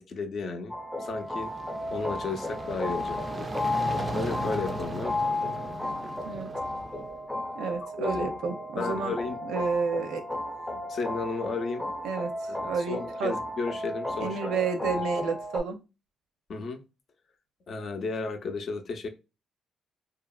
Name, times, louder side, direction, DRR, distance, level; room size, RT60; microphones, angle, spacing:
voice 1, 0.0-1.5 1.9-3.5 4.1-5.2 7.8-8.3 8.8-9.4 10.9-11.8 12.4-14.5 16.5-16.8 17.7-19.1, left 4 dB, 55° left, 6 dB, 0.6 m, -33 dB
sound 1, 0.7-15.6, left 2 dB, 15° left, 0.7 m, -34 dB
sound 2, 1.1-7.2, right 2 dB, 30° right, 0.3 m, -37 dB
voice 2, 7.5-9.1 9.4-10.2 12.0-12.3 12.6-13.4 14.2-15.8, right 5 dB, 85° right, 7 dB, 0.5 m, -30 dB
2.8 x 2.4 x 2.3 m, 0.27 s
cardioid pair, 90°, 0 cm